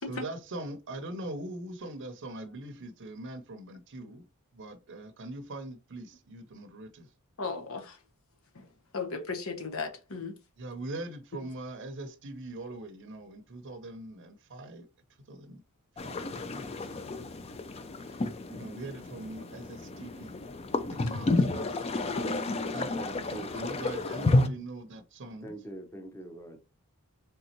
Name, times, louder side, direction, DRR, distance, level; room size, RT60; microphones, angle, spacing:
voice 1, 0.1-4.2 4.5-7.1 10.6-14.9 15.3-15.6 16.0-17.0 18.0-20.5 20.9-25.5, right 2 dB, 55° right, 0.6 m, -42 dB
voice 2, 7.4-8.0 8.5-8.7 8.9-10.4, left 4 dB, 65° left, 0.9 m, -36 dB
sound 1, 16.0-24.5, left 2 dB, 25° left, 0.4 m, -31 dB
voice 3, 22.9-23.5 24.2-24.3 25.4-26.6, right 1 dB, 10° left, 0.8 m, -43 dB
4.0 x 3.4 x 2.9 m
head